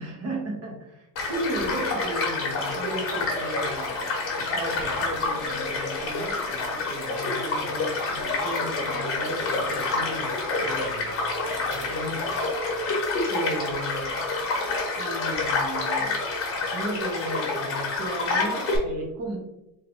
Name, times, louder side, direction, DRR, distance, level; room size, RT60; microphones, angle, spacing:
voice 1, 0.0-4.0 4.4-11.1 11.4-12.3 13.3-14.2 14.9-16.2 16.6-19.4, right 1 dB, 30° right, -1 dB, 1.1 m, -35 dB
Child speech kid speaking / Stream / Car passing by, 1.2-18.8, left 3 dB, 30° left, 1.2 m, -28 dB
3.7 x 2.7 x 3.7 m, 0.93 s
cardioid pair, 160°, 46 cm